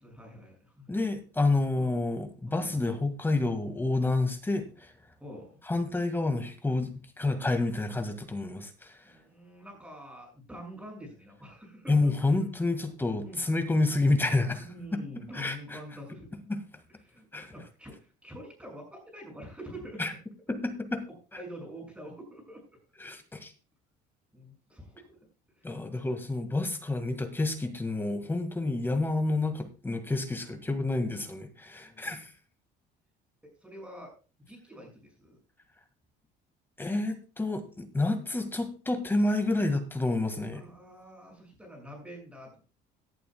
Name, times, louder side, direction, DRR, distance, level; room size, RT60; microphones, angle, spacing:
voice 1, 0.0-0.9 1.7-2.0 2.5-2.9 5.2-5.6 9.0-12.3 13.2-13.4 14.6-16.3 17.0-20.0 21.1-22.6 24.3-25.2 25.6-26.1 30.4-30.6 31.8-32.2 33.4-34.1 34.5-35.4 40.5-42.6, equal, 5° right, 1 dB, 6.4 m, -46 dB
voice 2, 0.9-4.9 5.7-8.9 11.9-14.6 14.9-15.0 15.3-15.8 16.5-16.6 17.3-17.5 20.0-20.1 20.5-21.0 23.0-23.5 25.6-32.3 36.8-40.7, left 2 dB, 10° left, 7 dB, 2.0 m, -29 dB
17.5 x 11.0 x 2.3 m, 0.33 s
cardioid pair, 140°, 19 cm